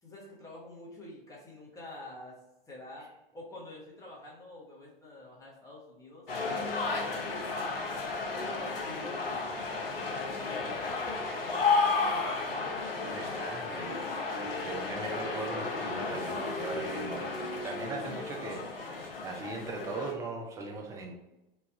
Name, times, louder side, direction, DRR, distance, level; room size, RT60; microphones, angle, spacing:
voice 1, 0.0-2.4 2.7-6.3 6.9-12.4, left 2 dB, 10° left, -5 dB, 1.0 m, -49 dB
sound 1, 6.3-20.1, left 3 dB, 70° left, 0.8 m, -33 dB
voice 2, 13.1-21.1, right 3 dB, 10° right, 0 dB, 0.5 m, -40 dB
3.2 x 2.4 x 3.4 m, 0.96 s
figure-of-eight pair, 95°, 29 cm